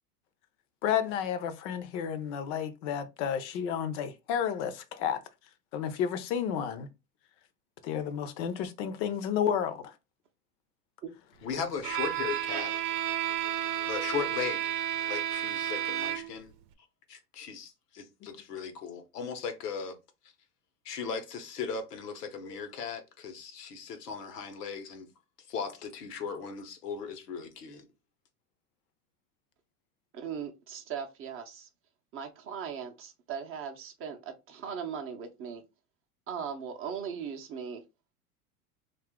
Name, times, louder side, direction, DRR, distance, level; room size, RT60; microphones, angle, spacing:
voice 1, 0.8-5.2 5.7-6.9 7.8-9.9, left 8 dB, 50° left, 0.6 m, -31 dB
voice 2, 11.4-12.9 13.9-14.7 15.1-16.5 17.1-20.0 20.8-25.1 25.4-27.8, left 6 dB, 80° left, 0.9 m, -37 dB
Bowed string instrument, 11.8-16.5, right 11 dB, 80° right, 0.7 m, -32 dB
voice 3, 30.1-31.7 32.1-35.6 36.3-37.8, right 7 dB, 30° right, 0.6 m, -39 dB
2.6 x 2.4 x 3.6 m
hypercardioid pair, 105°, 46 cm